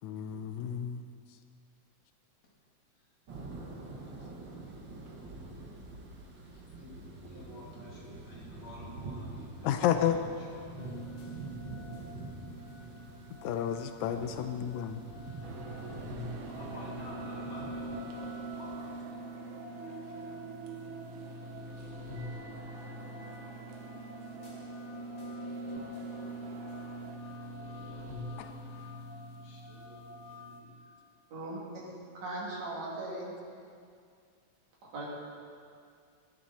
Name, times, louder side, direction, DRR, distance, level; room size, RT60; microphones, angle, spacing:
voice 1, 0.0-1.0 6.8-7.0 9.6-10.2 13.4-15.0 28.4-28.5, left 9 dB, 90° left, 8 dB, 2.0 m, -31 dB
sound 1, 3.3-19.0, right 2 dB, 45° right, 2.0 m, -46 dB
voice 2, 7.2-11.0 14.0-14.7 16.4-19.5 27.4-28.1 29.4-30.9 31.9-32.0, left 1 dB, 60° left, -4 dB, 3.4 m, -52 dB
sound 2, 10.8-30.6, equal, 45° left, 0.6 m, -44 dB
sound 3, 15.4-27.2, right 6 dB, 85° right, 2.6 m, -48 dB
voice 3, 32.2-33.3 34.9-35.1, right 2 dB, 65° right, -6 dB, 4.1 m, -38 dB
21.0 x 11.5 x 4.3 m, 2.3 s
omnidirectional pair, 3.3 m